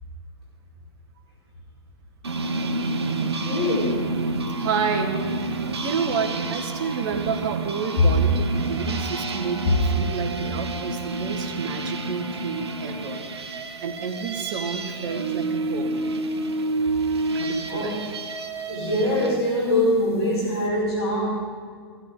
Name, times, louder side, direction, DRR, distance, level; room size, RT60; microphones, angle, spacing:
sound 1, 2.2-19.4, right 3 dB, 80° right, 1.3 m, -29 dB
voice 1, 3.4-4.1 8.0-8.1 17.7-18.0 18.7-21.3, left 1 dB, 75° left, -4 dB, 4.8 m, -23 dB
voice 2, 4.6-5.2 5.8-13.2 13.8-16.0 17.3-18.0, right 6 dB, 50° right, 5 dB, 1.8 m, -30 dB
16.0 x 15.5 x 3.9 m, 2.1 s
hypercardioid pair, 110°, 14 cm